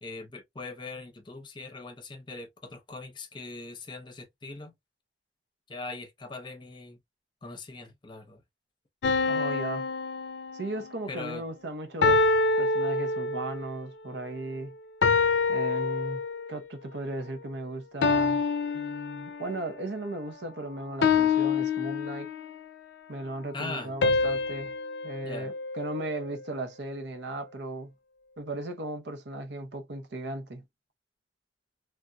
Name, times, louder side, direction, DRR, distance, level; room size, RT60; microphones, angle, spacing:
voice 1, 0.0-4.7 5.7-7.0 7.4-8.4 11.1-11.4 23.5-23.9 25.2-25.5, left 3 dB, 25° left, 0.7 m, -41 dB
sound 1, 9.0-11.0 12.0-13.7 15.0-16.6 18.0-19.7 21.0-22.6 24.0-26.3, left 4 dB, 75° left, 0.5 m, -27 dB
voice 2, 9.2-9.9 10.5-12.2 12.6-14.7 15.5-16.2 16.5-18.4 18.7-22.3 23.1-24.7 25.0-27.9 28.4-30.6, right 2 dB, 75° right, 0.8 m, -36 dB
3.4 x 2.6 x 2.2 m
head